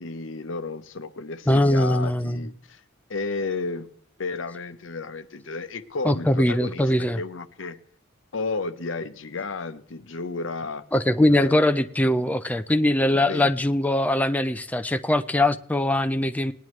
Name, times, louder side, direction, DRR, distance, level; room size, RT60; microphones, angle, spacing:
voice 1, 0.0-2.8 3.1-3.9 4.2-7.8 8.3-10.8 11.3-11.6 13.1-13.5, left 3 dB, 75° left, 0.8 m, -32 dB
voice 2, 1.5-2.5 6.0-7.2 10.9-16.5, left 1 dB, 10° left, 0.4 m, -21 dB
18.5 x 10.5 x 3.1 m
head